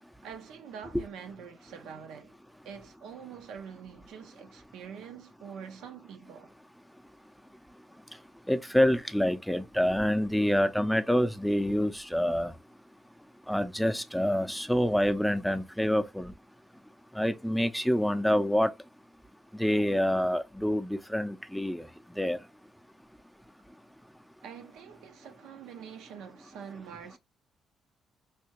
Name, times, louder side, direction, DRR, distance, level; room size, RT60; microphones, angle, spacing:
voice 1, 0.2-2.3 2.6-6.5 24.4-27.2, right 7 dB, 90° right, 0.5 m, -45 dB
voice 2, 7.7-12.6 13.4-16.3 17.1-18.9 19.5-22.5 23.7-23.8, equal, ahead, 0.4 m, -27 dB
3.3 x 2.7 x 3.0 m
cardioid pair, 90°, 0 cm